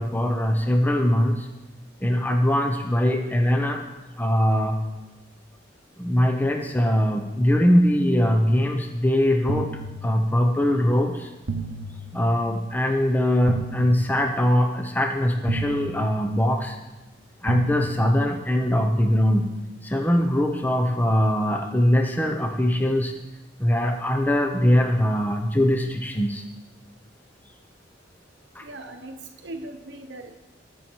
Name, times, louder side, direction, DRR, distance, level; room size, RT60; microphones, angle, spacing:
voice 1, 0.0-1.5 2.0-3.8 4.2-4.8 6.0-9.7 10.0-11.3 12.1-16.7 17.4-19.5 19.8-23.1 23.6-26.4 28.6-28.7, equal, 10° left, 3 dB, 0.8 m, -21 dB
sound 1, 9.5-10.7 11.5-12.7 13.5-14.7 15.5-16.7 17.5-18.7, right 3 dB, 90° right, 0.7 m, -34 dB
voice 2, 28.6-30.3, right 2 dB, 70° right, 5 dB, 1.0 m, -39 dB
20.0 x 7.1 x 4.6 m, 1.1 s
head